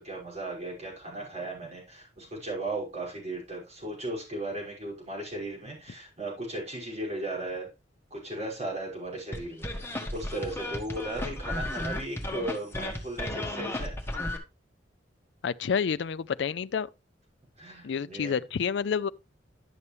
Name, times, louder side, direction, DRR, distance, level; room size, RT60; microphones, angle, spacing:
voice 1, 0.0-7.7 8.1-14.2 17.6-18.4, right 1 dB, 40° right, 5.6 m, -36 dB
sound 1, 9.3-14.4, left 1 dB, 15° left, 1.5 m, -34 dB
voice 2, 15.4-16.9 17.8-19.1, left 6 dB, 75° left, 0.4 m, -29 dB
11.0 x 6.9 x 3.2 m
head